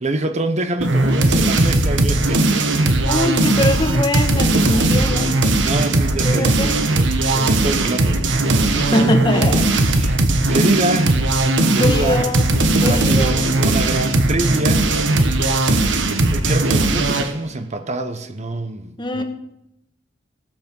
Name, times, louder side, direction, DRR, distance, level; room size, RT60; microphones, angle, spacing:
voice 1, 0.0-2.6 5.6-6.8 7.3-9.0 10.0-10.2 10.5-11.2 11.7-12.3 12.9-14.9 16.1-19.2, right 2 dB, 40° right, 0.9 m, -25 dB
sound 1, 0.8-17.3, right 2 dB, 75° right, 1.3 m, -18 dB
voice 2, 3.0-5.3 6.2-6.7 8.7-10.0 11.8-12.5 12.8-13.4 19.0-19.2, left 1 dB, 25° left, 1.6 m, -22 dB
18.0 x 8.5 x 5.4 m
head